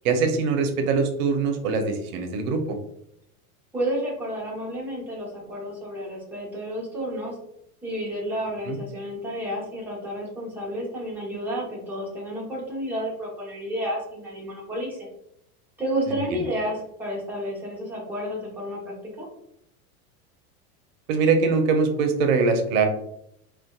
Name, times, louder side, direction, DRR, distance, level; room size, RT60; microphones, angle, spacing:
voice 1, 0.0-2.8 8.7-8.8 16.3-16.4 21.1-22.9, right 4 dB, 65° right, 6 dB, 0.7 m, -22 dB
voice 2, 3.7-7.3 7.8-15.1 15.8-19.3, equal, 5° right, -5 dB, 0.9 m, -31 dB
2.6 x 2.2 x 2.2 m, 0.74 s
supercardioid pair, 115°, 44 cm